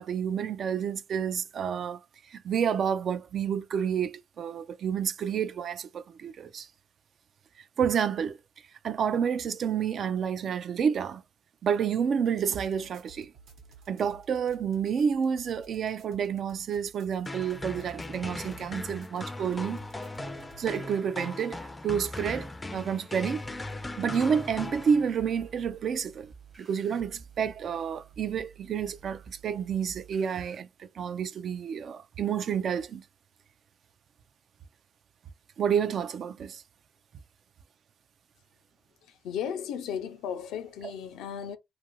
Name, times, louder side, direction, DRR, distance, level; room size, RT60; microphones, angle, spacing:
voice 1, 0.0-2.0 2.3-6.7 7.8-8.4 8.8-11.2 11.6-13.3 13.9-19.8 20.6-23.4 24.0-26.3 26.6-33.0 35.6-36.6, right 7 dB, 60° right, 0.3 m, -29 dB
sound 1, 12.6-20.9, right 4 dB, 80° right, 1.0 m, -55 dB
sound 2, 17.3-25.4, left 2 dB, 20° left, 0.4 m, -39 dB
sound 3, 23.4-30.6, right 7 dB, 35° right, 0.9 m, -52 dB
voice 2, 39.0-41.6, left 8 dB, 90° left, 0.4 m, -35 dB
2.6 x 2.5 x 2.9 m
cardioid pair, 90°, 0 cm